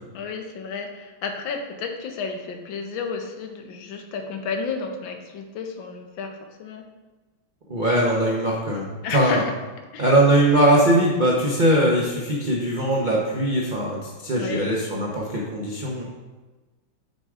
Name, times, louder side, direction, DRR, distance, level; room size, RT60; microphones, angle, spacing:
voice 1, 0.1-6.8 9.0-9.5 9.9-10.1 14.3-14.7, left 5 dB, 80° left, 4 dB, 1.5 m, -32 dB
voice 2, 7.7-9.4 10.0-16.0, right 1 dB, 60° right, -4 dB, 0.5 m, -21 dB
6.7 x 3.6 x 4.8 m, 1.2 s
omnidirectional pair, 2.1 m